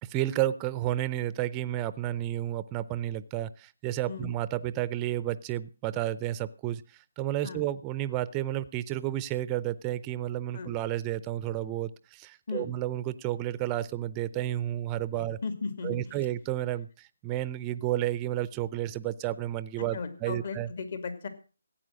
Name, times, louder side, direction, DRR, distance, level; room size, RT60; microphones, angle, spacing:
voice 1, 0.0-15.4 15.8-20.7, right 13 dB, 20° right, 16 dB, 0.6 m, -31 dB
voice 2, 15.1-16.2 19.9-21.3, left 4 dB, 50° left, 9 dB, 2.4 m, -36 dB
15.5 x 8.8 x 6.4 m, 0.37 s
figure-of-eight pair, 155°, 0 cm